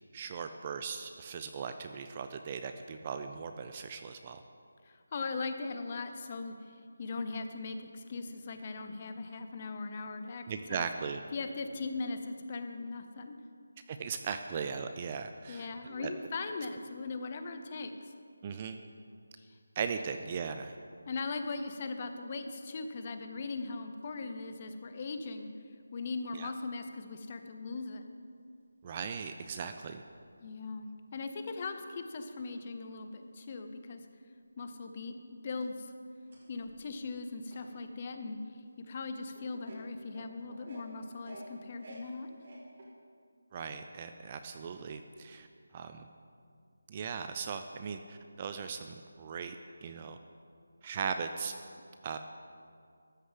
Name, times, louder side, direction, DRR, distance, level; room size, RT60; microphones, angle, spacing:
voice 1, 0.1-4.4 10.5-11.2 13.9-16.1 18.4-18.8 19.8-20.8 26.3-26.5 28.8-30.0 43.5-45.5 45.7-46.1 46.9-50.2 50.8-51.5 52.0-52.2, right 6 dB, 20° right, 7 dB, 0.3 m, -38 dB
voice 2, 4.8-10.9 11.3-13.4 15.5-18.1 19.4-19.5 21.1-25.5 25.9-28.0 30.4-34.0 34.6-35.9 36.5-42.3, left 3 dB, 25° left, 7 dB, 0.7 m, -39 dB
sound 1, 24.0-25.3 25.9-26.0 28.0-28.1 29.2-29.3 30.0-30.1 33.4-33.5 34.3-34.4 34.9-35.0 35.4-38.1 38.6-38.7 39.3-42.8, right 1 dB, 35° right, 2.4 m, -54 dB
13.0 x 6.7 x 7.4 m, 2.2 s
figure-of-eight pair, 175°, 0 cm